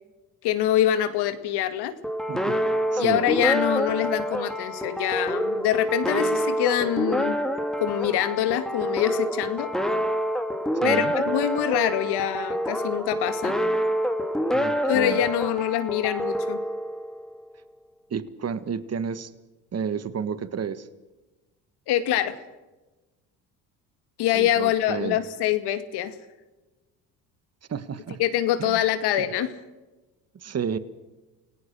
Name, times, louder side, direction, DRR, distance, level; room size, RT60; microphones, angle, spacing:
voice 1, 0.4-1.9 3.0-7.4 7.8-9.7 10.8-13.5 14.9-16.6 21.9-22.4 24.2-26.1 28.2-29.5, left 11 dB, 75° left, 11 dB, 2.2 m, -25 dB
sound 1, 2.0-17.4, equal, ahead, 2.6 m, -27 dB
voice 2, 2.3-2.6 2.9-3.4 10.7-11.1 14.5-15.2 18.1-19.3 19.7-20.9 24.3-25.2 27.7-28.2 28.6-28.8 29.2-29.3 30.3-30.8, right 7 dB, 40° right, 14 dB, 1.7 m, -31 dB
28.5 x 18.0 x 6.4 m, 1.1 s
supercardioid pair, 80°, 40 cm